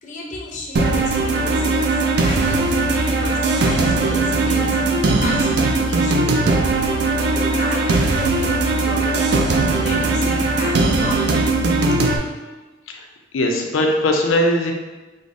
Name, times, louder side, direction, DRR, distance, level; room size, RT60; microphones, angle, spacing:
voice 1, 0.0-6.7 7.2-9.3 9.8-11.5, left 2 dB, 35° left, -1 dB, 0.5 m, -33 dB
sound 1, 0.8-12.2, right 3 dB, 55° right, 0.3 m, -19 dB
voice 2, 13.3-14.7, left 1 dB, 85° left, 2 dB, 0.5 m, -19 dB
4.9 x 2.0 x 2.6 m, 1.2 s
head